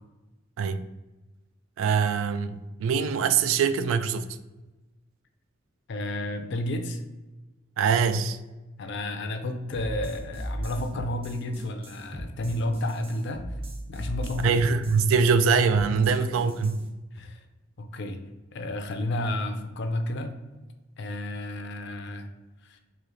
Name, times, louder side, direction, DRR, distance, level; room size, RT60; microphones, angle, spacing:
voice 1, 1.8-4.3 7.8-8.4 14.4-16.8, right 5 dB, 85° right, 12 dB, 0.3 m, -23 dB
voice 2, 5.9-7.0 8.8-13.5 13.9-14.6 16.0-16.1 16.4-16.5 17.1-17.4 17.8-18.2 18.5-20.4 21.0-22.3 22.6-22.8, left 1 dB, 60° left, 7 dB, 0.5 m, -31 dB
sound 1, 9.7-16.8, right 1 dB, 30° right, 0.6 m, -37 dB
3.2 x 2.9 x 3.8 m, 1.1 s
head